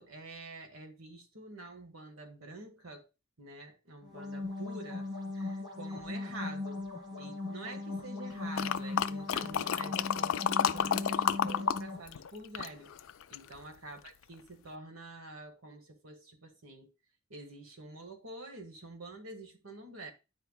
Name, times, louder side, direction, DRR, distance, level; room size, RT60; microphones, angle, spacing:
voice 1, 0.0-3.1 3.4-6.8 7.2-12.9 13.3-16.9 17.3-20.1, right 2 dB, 75° right, 1.5 m, -47 dB
sound 1, 4.0-12.0, left 2 dB, 20° right, 2.1 m, -39 dB
sound 2, 8.5-11.8 12.1-13.5 14.0-14.1, left 8 dB, 70° left, 0.4 m, -30 dB
10.0 x 4.5 x 2.2 m
head